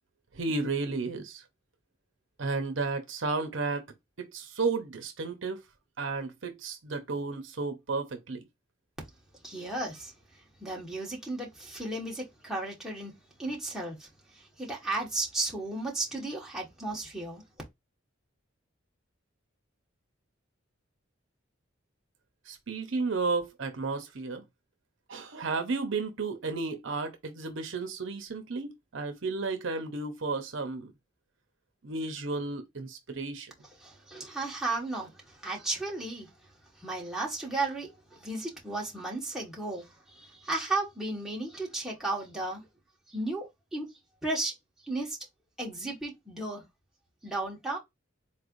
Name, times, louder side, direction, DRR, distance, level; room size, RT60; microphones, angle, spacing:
voice 1, 0.3-1.4 2.4-3.8 4.3-5.6 6.0-8.4 22.5-24.4 25.1-30.9 31.8-33.5, right 3 dB, 70° right, 0.8 m, -33 dB
voice 2, 9.4-10.1 10.6-14.1 14.6-17.4 33.8-36.3 36.8-42.6 43.1-43.9 44.2-44.5 44.9-45.2 45.6-46.6 47.2-47.8, right 2 dB, 5° right, 1.4 m, -34 dB
4.2 x 3.3 x 2.6 m
head